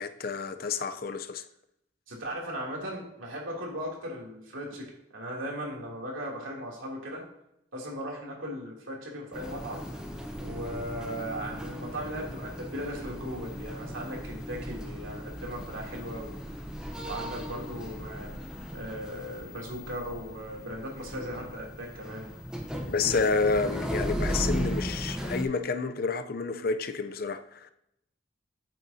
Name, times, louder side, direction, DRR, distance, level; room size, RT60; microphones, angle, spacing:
voice 1, 0.0-1.4 22.9-27.7, left 4 dB, 45° left, 0.6 m, -29 dB
voice 2, 2.1-7.2 7.7-9.9 10.4-16.4 17.0-18.3 18.7-22.3, equal, 80° right, 3.0 m, -38 dB
sound 1, 9.3-25.4, equal, 5° right, 0.9 m, -36 dB
9.1 x 8.2 x 2.8 m
head